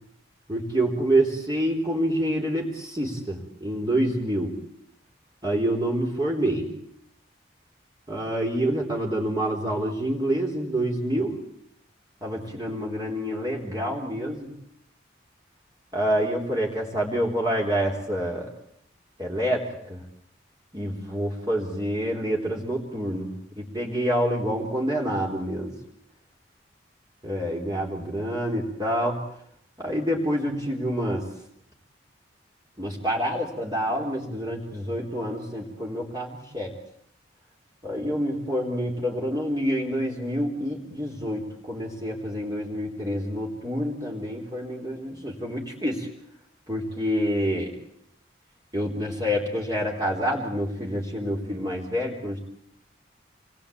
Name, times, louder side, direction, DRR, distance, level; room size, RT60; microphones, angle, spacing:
voice 1, 0.5-4.5 5.4-6.7 8.1-11.4 12.2-14.5 15.9-18.5 19.2-20.0 20.7-23.3 23.6-25.7 27.2-29.2 29.8-31.2 32.8-36.8 37.8-46.1 46.7-47.7 48.7-52.4, equal, 20° right, -2 dB, 4.0 m, -27 dB
28.0 x 21.5 x 8.7 m, 0.72 s
head